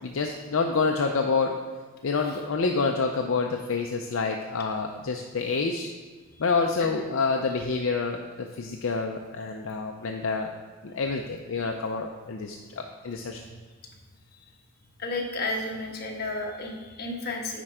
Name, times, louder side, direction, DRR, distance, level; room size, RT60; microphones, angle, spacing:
voice 1, 0.0-1.5 2.0-5.9 6.4-10.5 10.8-13.4, left 4 dB, 65° left, 2 dB, 0.5 m, -28 dB
voice 2, 15.0-17.6, left 2 dB, 45° left, -1 dB, 1.2 m, -34 dB
10.0 x 4.4 x 4.9 m, 1.4 s
head